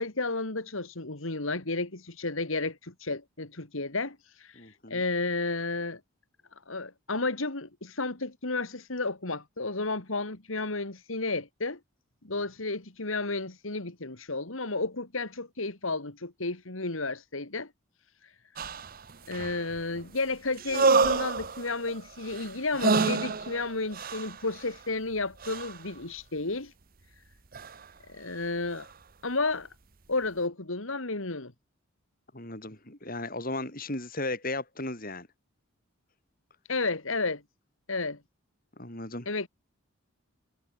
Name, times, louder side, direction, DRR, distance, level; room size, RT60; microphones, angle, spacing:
voice 1, 0.0-6.0 6.7-11.8 12.2-17.7 18.2-18.3 19.3-26.7 28.1-28.9 29.2-29.7 30.1-31.5 36.7-37.4 37.9-38.2 39.3-39.5, left 3 dB, 75° left, 2.5 m, -32 dB
voice 2, 4.6-5.0 32.3-35.3 38.8-39.3, left 2 dB, 45° left, 7.0 m, -36 dB
sound 1, 18.6-20.0 20.6-24.8 25.4-25.9 27.5-27.8 28.7-28.9, right 4 dB, 45° right, 1.0 m, -28 dB
head